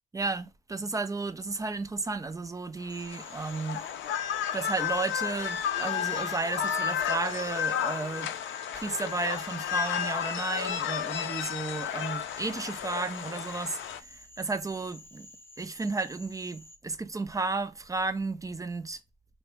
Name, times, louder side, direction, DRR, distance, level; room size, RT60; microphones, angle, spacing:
voice 1, 0.1-3.8 4.5-8.3 8.7-15.3 15.6-19.0, right 3 dB, 15° right, 0.3 m, -33 dB
sound 1, 2.9-14.0, left 9 dB, 70° left, 0.4 m, -32 dB
Frog, 2.9-16.8, left 1 dB, 10° left, 0.7 m, -52 dB
3.3 x 2.1 x 3.1 m
cardioid pair, 90°, 20 cm